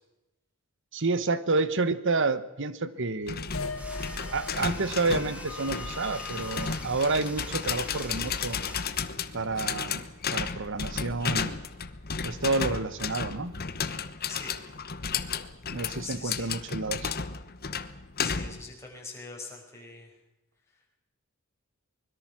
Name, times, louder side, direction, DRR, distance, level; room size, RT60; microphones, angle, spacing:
voice 1, 0.9-3.4 4.3-8.6 9.3-10.0 10.3-11.6 12.2-13.5 15.7-17.1, right 3 dB, 60° right, 14 dB, 1.3 m, -29 dB
sound 1, 3.3-18.7, left 6 dB, 45° left, 1.1 m, -34 dB
sound 2, 3.4-10.0, left 3 dB, 70° left, 3.1 m, -41 dB
sound 3, 3.8-8.9, equal, 5° right, 2.4 m, -46 dB
voice 2, 16.0-16.5 18.2-20.1, left 4 dB, 15° left, -2 dB, 5.2 m, -42 dB
24.0 x 21.5 x 6.2 m, 0.95 s
head